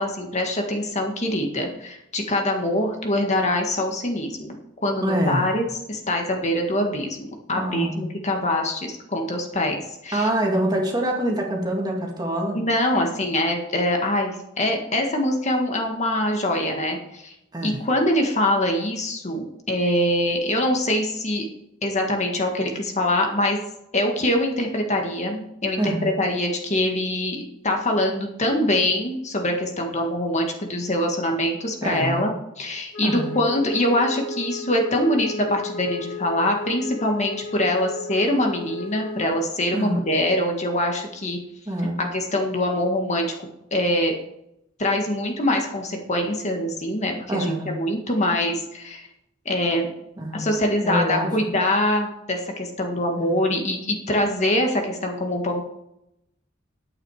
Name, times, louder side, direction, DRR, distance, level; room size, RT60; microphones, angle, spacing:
voice 1, 0.0-10.3 12.5-17.3 17.6-21.5 21.8-23.6 23.9-41.4 42.0-43.3 43.7-44.1 44.8-49.1 49.5-49.9 50.3-55.6, left 1 dB, 35° left, 2 dB, 1.8 m, -24 dB
voice 2, 5.0-5.5 7.5-8.0 10.1-12.6 17.5-17.8 25.8-26.1 31.8-32.3 33.0-33.3 39.7-40.1 41.7-42.0 47.3-47.7 50.2-50.4 50.8-51.3 53.2-53.3, right 1 dB, 20° right, 0 dB, 2.1 m, -25 dB
Wind instrument woodwind instrument, 32.9-39.4, left 3 dB, 60° left, 2.7 m, -34 dB
10.5 x 8.8 x 4.9 m, 0.81 s
head